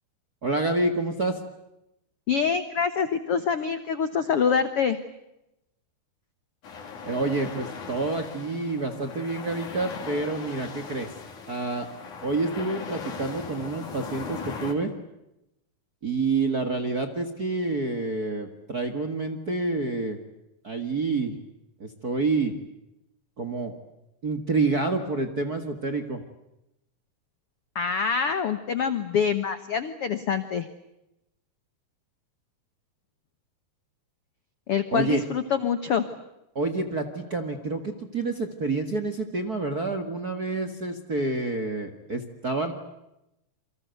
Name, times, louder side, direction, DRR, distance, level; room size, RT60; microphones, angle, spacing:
voice 1, 0.4-1.4 7.0-11.1 11.5-11.9 12.2-14.9 16.0-20.2 20.6-21.3 21.8-22.5 23.4-23.7 24.2-26.2 34.9-35.2 36.5-42.7, right 3 dB, 40° right, 8 dB, 1.4 m, -28 dB
voice 2, 2.3-5.0 27.7-30.7 34.7-36.0, left 6 dB, 75° left, 11 dB, 1.3 m, -25 dB
sound 1, 6.6-14.7, left 5 dB, 50° left, 4.5 m, -39 dB
28.5 x 25.0 x 7.9 m, 0.89 s
omnidirectional pair, 4.5 m